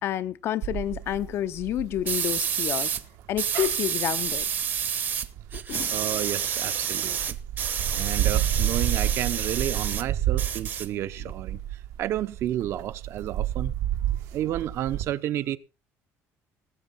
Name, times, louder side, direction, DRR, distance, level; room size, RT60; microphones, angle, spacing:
voice 1, 0.0-3.0 3.3-4.5 5.5-5.9, left 12 dB, 50° left, 0.6 m, -29 dB
sound 1, 0.6-6.6 7.1-15.0, right 11 dB, 85° right, 1.8 m, -30 dB
sound 2, 2.1-3.0 3.4-5.3 5.5-10.0 10.3-11.3, right 8 dB, 35° right, 1.0 m, -29 dB
voice 2, 5.9-7.4 7.9-13.7 14.3-15.6, right 12 dB, 55° right, 0.9 m, -31 dB
19.0 x 8.1 x 4.1 m
cardioid pair, 150°, 5 cm